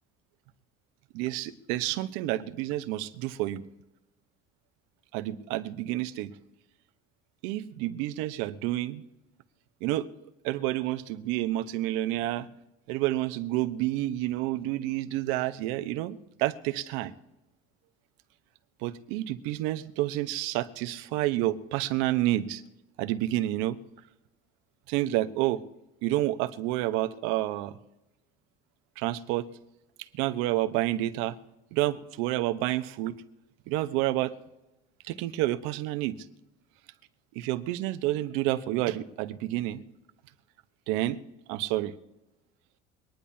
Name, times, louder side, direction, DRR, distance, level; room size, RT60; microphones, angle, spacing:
voice 1, 1.1-3.6 5.1-6.3 7.4-9.0 9.8-10.1 10.4-12.5 12.9-17.1 18.8-22.6 23.0-23.8 24.9-25.6 26.0-27.8 29.0-29.5 30.2-31.4 31.7-33.2 33.7-34.3 35.0-36.2 37.3-39.8 40.9-41.2 41.5-41.9, right 15 dB, 75° right, 10 dB, 1.0 m, -29 dB
24.5 x 10.5 x 2.8 m, 0.97 s
cardioid pair, 140°, 21 cm